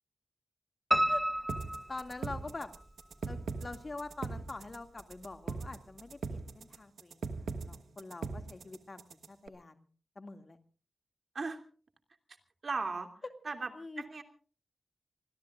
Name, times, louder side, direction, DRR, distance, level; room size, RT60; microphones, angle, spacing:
Piano, 0.9-2.8 3.2-4.1 4.4-4.5 5.0-5.1 5.3-5.4, equal, 5° right, 0.9 m, -32 dB
sound 1, 1.5-9.5, right 4 dB, 85° right, 1.3 m, -40 dB
voice 1, 1.9-2.7 3.3-9.8 10.2-10.6 13.7-14.0, left 3 dB, 45° left, 7 dB, 2.2 m, -45 dB
voice 2, 12.6-13.1 13.4-13.7 14.0-14.2, right 4 dB, 60° right, 6 dB, 2.8 m, -36 dB
28.0 x 21.0 x 2.5 m, 0.41 s
cardioid pair, 50°, 0 cm